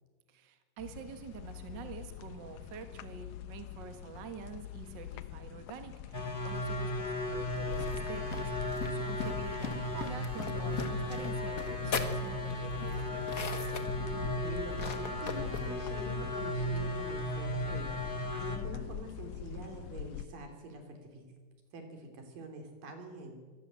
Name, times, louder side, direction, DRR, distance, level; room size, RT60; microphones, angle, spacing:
voice 1, 0.3-13.7, right 6 dB, 40° right, 7 dB, 2.0 m, -47 dB
sound 1, 0.8-20.3, left 11 dB, 80° left, 2.4 m, -43 dB
sound 2, 6.1-18.6, equal, 20° left, 1.9 m, -36 dB
sound 3, 7.6-16.3, left 4 dB, 40° left, 1.2 m, -41 dB
voice 2, 14.2-21.3 21.7-23.4, right 2 dB, 85° right, 4 dB, 4.9 m, -46 dB
24.0 x 18.0 x 7.6 m, 1.5 s
omnidirectional pair, 3.8 m